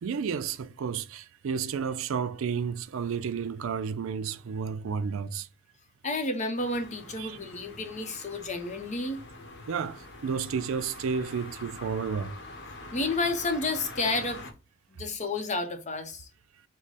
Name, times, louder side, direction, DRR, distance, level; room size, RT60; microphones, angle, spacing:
voice 1, 0.0-5.5 7.2-7.4 9.7-12.3, right 6 dB, 65° right, 0.4 m, -31 dB
voice 2, 6.0-9.2 12.9-14.4 14.9-16.3, left 2 dB, 35° left, 0.7 m, -31 dB
sound 1, 6.5-14.5, left 2 dB, 60° left, 0.9 m, -45 dB
4.7 x 2.1 x 4.0 m
head